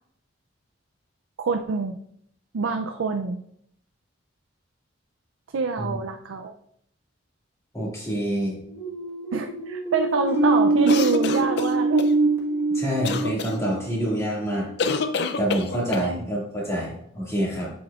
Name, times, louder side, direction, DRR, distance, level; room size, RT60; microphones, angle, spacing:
voice 1, 1.4-2.0 2.5-3.4 5.5-6.5 9.3-12.1 16.0-16.3, right 4 dB, 90° right, 5 dB, 0.5 m, -26 dB
voice 2, 7.7-8.6 12.7-14.7 15.4-17.7, equal, 15° left, -5 dB, 2.1 m, -27 dB
sound 1, 8.6-14.3, right 2 dB, 10° right, 1.3 m, -24 dB
sound 2, 10.9-12.1 13.0-13.5 14.8-16.1, left 4 dB, 55° left, 0.5 m, -27 dB
7.8 x 7.0 x 2.4 m, 0.70 s
head